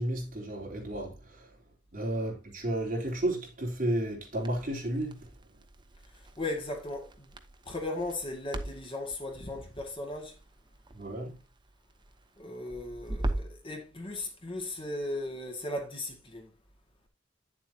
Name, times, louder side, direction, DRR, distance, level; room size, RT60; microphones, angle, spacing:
voice 1, 0.0-1.5 1.9-5.3 10.9-11.4, right 1 dB, 45° right, 3.6 m, -32 dB
Crackle, 4.3-13.6, right 1 dB, 25° right, 0.9 m, -41 dB
voice 2, 6.4-7.1 7.7-10.3 12.4-16.5, left 2 dB, 30° left, 2.1 m, -36 dB
9.8 x 7.5 x 2.9 m
head